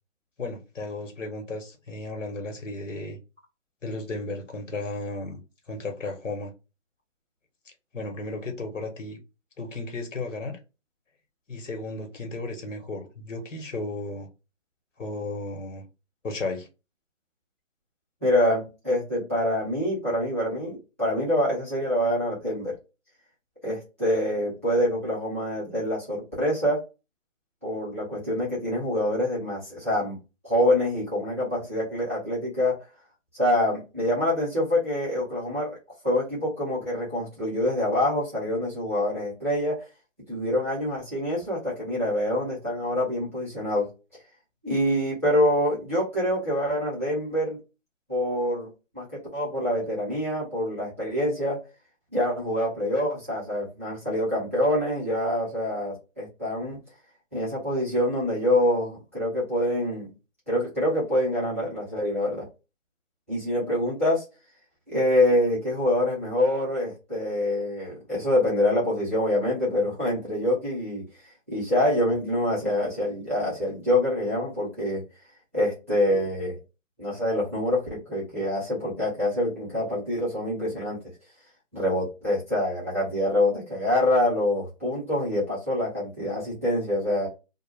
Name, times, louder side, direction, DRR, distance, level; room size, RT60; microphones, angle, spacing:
voice 1, 0.4-3.2 3.8-5.4 5.7-6.5 7.9-9.2 9.6-10.6 11.5-14.3 15.0-15.8 16.2-16.7, left 2 dB, 70° left, 1.0 m, -34 dB
voice 2, 18.2-22.7 23.6-26.8 27.6-30.2 30.4-32.8 33.3-35.8 36.0-39.8 40.3-43.9 44.6-47.6 48.1-48.7 48.9-51.6 52.1-56.8 57.3-60.1 60.5-62.5 63.3-64.2 64.9-71.0 71.5-75.0 75.5-76.6 77.0-81.0 81.7-87.3, left 1 dB, 10° right, 0.5 m, -25 dB
2.3 x 2.1 x 3.1 m
hypercardioid pair, 155°, 38 cm